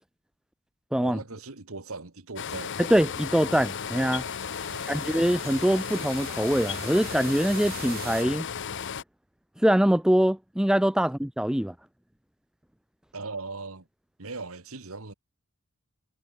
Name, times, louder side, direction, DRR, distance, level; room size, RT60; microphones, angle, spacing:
voice 1, 1.0-2.8 4.6-5.0 11.0-11.1 13.1-13.9 14.2-15.1, right 3 dB, 70° right, 1.9 m, -39 dB
sound 1, 2.4-9.0, left 7 dB, 55° left, 0.7 m, -34 dB
voice 2, 2.8-4.2 4.9-8.5 9.6-11.7, equal, 5° right, 0.4 m, -23 dB
sound 2, 3.2-8.2, right 12 dB, 45° right, 2.5 m, -45 dB
head